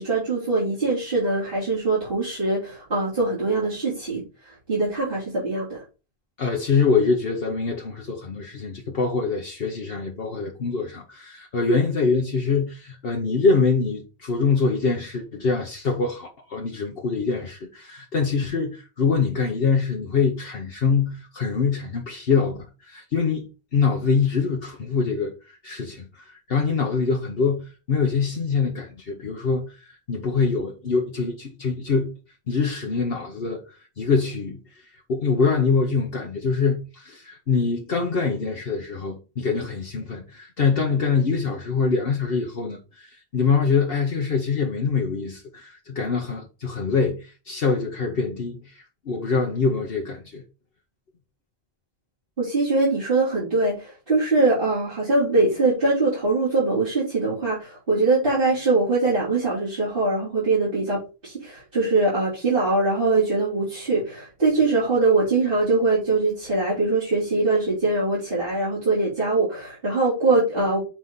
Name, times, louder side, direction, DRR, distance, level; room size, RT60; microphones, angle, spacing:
voice 1, 0.0-5.8 52.4-70.8, right 3 dB, 55° right, 4.1 m, -22 dB
voice 2, 6.4-32.1 32.5-50.4, left 5 dB, 65° left, 1.2 m, -24 dB
7.6 x 4.6 x 3.9 m
omnidirectional pair, 1.1 m